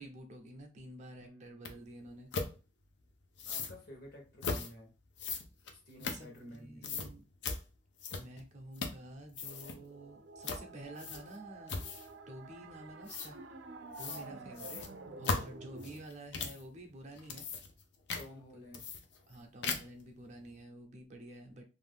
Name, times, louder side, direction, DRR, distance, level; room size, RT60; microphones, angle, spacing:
voice 1, 0.0-2.3 6.0-7.2 8.1-11.8 12.3-13.4 14.0-14.9 15.2-17.5 18.5-18.8 19.3-21.6, right 1 dB, 40° right, 4 dB, 0.5 m, -50 dB
voice 2, 1.2-1.5 3.4-4.9 5.7-7.1 14.0-14.7 18.2-18.9, equal, 60° left, 2 dB, 1.0 m, -53 dB
sound 1, 1.6-1.7 2.3-2.5 3.4-3.7 4.4-4.7 5.2-6.6 6.8-7.1 7.4-7.6 8.0-8.4 8.7-9.1 9.3-9.8 10.4-10.6 11.0-11.4 11.7-12.1 13.1-13.3 13.9-14.2 14.6-16.6 17.1-17.8 18.1-18.3 18.7-19.3 19.6-20.0, left 4 dB, 75° left, 0.5 m, -38 dB
sound 2, 9.5-16.0, right 3 dB, 85° right, 0.4 m, -50 dB
2.6 x 2.2 x 3.3 m, 0.32 s
head